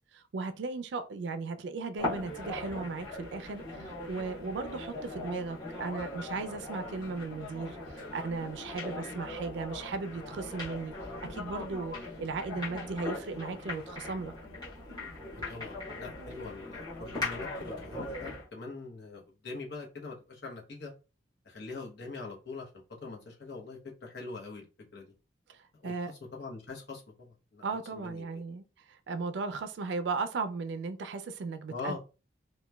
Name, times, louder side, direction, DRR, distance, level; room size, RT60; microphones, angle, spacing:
voice 1, 0.1-10.9 11.2-14.3 25.5-26.1 27.6-32.0, right 4 dB, 70° right, 0.3 m, -36 dB
sound 1, 2.0-18.5, left 2 dB, 20° left, 1.0 m, -40 dB
voice 2, 15.3-20.9 21.4-22.7 23.0-25.1 25.7-27.6 27.9-28.4 31.7-32.0, left 3 dB, 65° left, 0.9 m, -43 dB
2.9 x 2.2 x 2.2 m
head